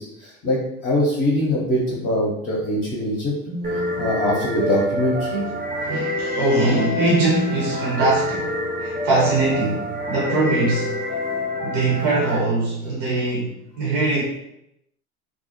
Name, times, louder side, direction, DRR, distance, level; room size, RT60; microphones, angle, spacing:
voice 1, 0.0-3.3 4.0-5.4 11.3-11.4, left 1 dB, 30° left, -4 dB, 0.7 m, -23 dB
voice 2, 3.5-4.1 5.9-8.5 8.8-10.9 11.6-13.5 13.8-14.2, right 2 dB, 60° right, -5 dB, 0.8 m, -22 dB
sound 1, 3.6-12.4, left 1 dB, 20° right, 0.5 m, -27 dB
2.4 x 2.0 x 2.6 m, 0.80 s
hypercardioid pair, 70°, 43 cm